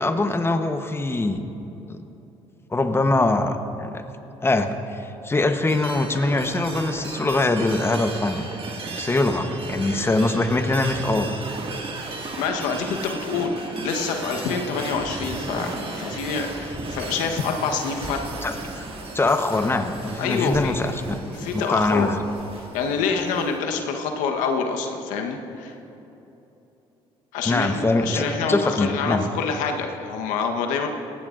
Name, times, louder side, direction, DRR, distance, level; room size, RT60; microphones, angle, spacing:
voice 1, 0.0-1.4 1.9-2.0 2.7-4.0 4.4-8.4 9.0-11.3 18.4-18.9 19.1-22.2 27.5-29.3, left 2 dB, 20° left, 7 dB, 1.0 m, -23 dB
sound 1, 5.7-23.6, right 2 dB, 45° right, 2.0 m, -35 dB
voice 2, 12.4-18.2 20.2-20.8 21.3-22.1 22.7-25.7 27.3-30.9, left 5 dB, 80° left, 3 dB, 1.1 m, -26 dB
18.0 x 16.0 x 2.5 m, 3.0 s
supercardioid pair, 65°, 13 cm